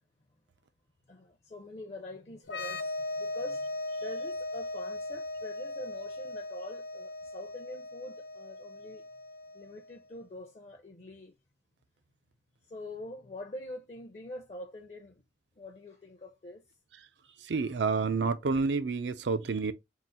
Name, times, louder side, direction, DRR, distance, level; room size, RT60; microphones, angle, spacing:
voice 1, 1.1-2.9 3.2-3.7 4.0-9.0 9.5-11.3 12.7-15.2 15.6-16.6, left 1 dB, 35° left, 0.5 m, -44 dB
sound 1, 2.4-9.9, left 2 dB, 85° left, 0.8 m, -38 dB
voice 2, 17.4-19.7, right 4 dB, 70° right, 0.5 m, -29 dB
3.8 x 2.5 x 4.2 m
head